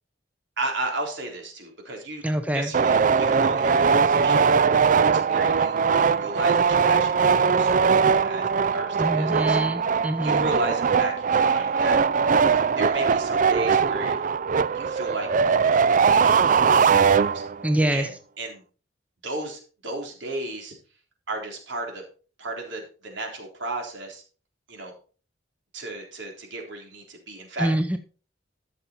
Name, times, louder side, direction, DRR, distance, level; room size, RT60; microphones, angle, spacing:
voice 1, 0.6-2.2 2.5-4.6 5.1-9.6 10.2-12.0 12.5-14.2 14.7-15.3 15.6-17.4 17.9-18.6 19.2-20.7 21.3-22.0 22.4-24.2 24.7-24.9 25.7-27.7, right 2 dB, 75° right, 1 dB, 3.8 m, -34 dB
voice 2, 2.2-2.7 9.0-10.5 17.6-18.1 27.6-28.0, right 1 dB, 10° right, 8 dB, 0.7 m, -25 dB
sound 1, 2.7-17.7, right 6 dB, 45° right, 0.4 m, -21 dB
13.0 x 6.9 x 4.3 m, 0.38 s
head